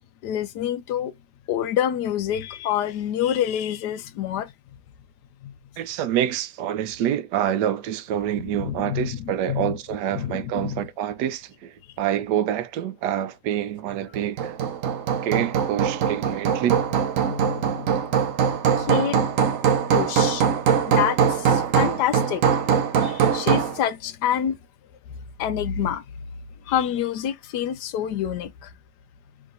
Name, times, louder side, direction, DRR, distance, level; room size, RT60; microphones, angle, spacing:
voice 1, 0.2-1.1 1.5-4.5 5.4-5.5 8.4-9.8 10.1-10.8 17.2-18.0 18.8-19.5 19.8-22.4 23.0-24.6 25.4-26.0 26.7-28.7, left 10 dB, 75° left, 1.2 m, -27 dB
voice 2, 5.8-11.7 12.0-14.5 15.2-16.8, right 10 dB, 80° right, 1.2 m, -27 dB
Hammer, 14.1-23.8, right 7 dB, 60° right, 0.9 m, -22 dB
3.7 x 2.8 x 3.8 m
omnidirectional pair, 1.8 m